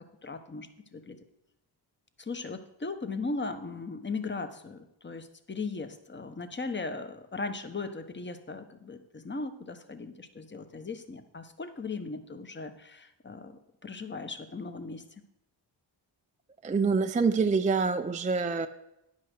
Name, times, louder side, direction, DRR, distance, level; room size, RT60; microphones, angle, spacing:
voice 1, 0.2-1.2 2.2-15.0, left 3 dB, 25° left, 9 dB, 1.0 m, -38 dB
voice 2, 16.6-18.7, right 4 dB, 15° right, 8 dB, 0.4 m, -26 dB
9.9 x 5.7 x 6.4 m, 0.86 s
cardioid pair, 70°, 46 cm